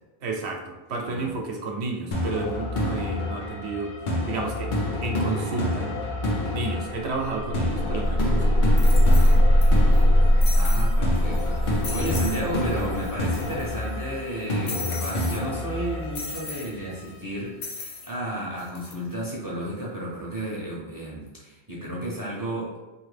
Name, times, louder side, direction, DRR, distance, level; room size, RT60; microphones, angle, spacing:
voice 1, 0.2-3.9 4.3-4.7 5.0-5.9 6.5-8.7, right 3 dB, 85° right, 1 dB, 0.9 m, -31 dB
sound 1, 2.1-17.1, left 1 dB, 55° left, 0.7 m, -29 dB
sound 2, 6.7-6.8 7.1-13.9, equal, 55° right, 0.8 m, -21 dB
sound 3, 7.9-8.0 8.8-9.6 9.9-10.0 10.4-10.9 11.3-11.5 11.8-12.4 12.7-12.8 13.0-13.8 14.7-15.4 16.1-16.7 17.6-18.1 18.6-18.9, left 4 dB, 80° left, 0.9 m, -36 dB
voice 2, 10.3-22.7, right 1 dB, 25° right, -6 dB, 0.6 m, -33 dB
2.8 x 2.6 x 3.2 m, 1.2 s
omnidirectional pair, 1.1 m